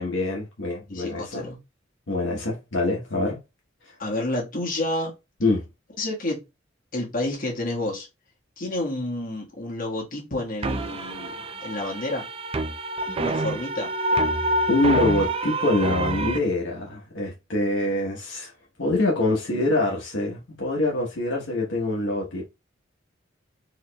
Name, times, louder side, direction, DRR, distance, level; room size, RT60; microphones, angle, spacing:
voice 1, 0.0-1.5 2.1-3.4 5.4-5.6 14.7-18.5 18.8-22.5, left 2 dB, 70° left, 1.0 m, -25 dB
voice 2, 0.9-1.6 4.0-5.1 6.0-6.4 6.9-8.1 8.6-12.3 13.1-13.9, left 1 dB, 45° left, 1.5 m, -30 dB
sound 1, 10.6-16.4, right 1 dB, 30° right, 0.4 m, -27 dB
4.7 x 3.0 x 2.3 m
head